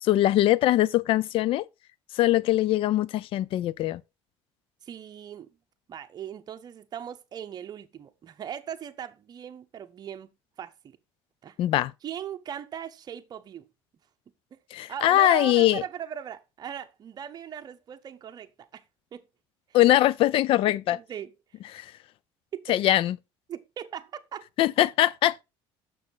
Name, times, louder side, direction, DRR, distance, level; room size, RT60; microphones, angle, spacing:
voice 1, 0.0-1.6 2.1-4.0 11.6-11.9 14.7-15.8 19.7-21.0 21.7-21.9 22.7-23.2 24.6-25.4, left 14 dB, 55° left, 0.4 m, -22 dB
voice 2, 4.8-5.5 5.9-10.3 10.6-11.0 11.4-11.6 12.0-13.7 14.5-14.6 14.9-18.8 19.1-19.2 20.9-21.3 22.5-22.8 23.5-24.5, right 9 dB, 40° right, 0.9 m, -38 dB
6.5 x 6.3 x 3.9 m
cardioid pair, 120°, 11 cm